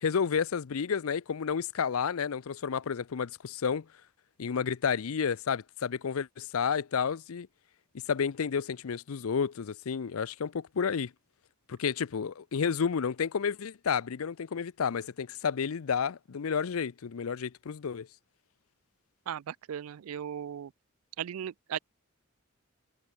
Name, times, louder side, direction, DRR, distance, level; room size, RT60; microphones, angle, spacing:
voice 1, 0.0-3.8 4.4-7.5 8.1-11.1 11.7-18.1, left 6 dB, 75° left, 0.5 m, -31 dB
voice 2, 19.3-20.7 21.2-21.8, right 9 dB, 80° right, 0.4 m, -37 dB
head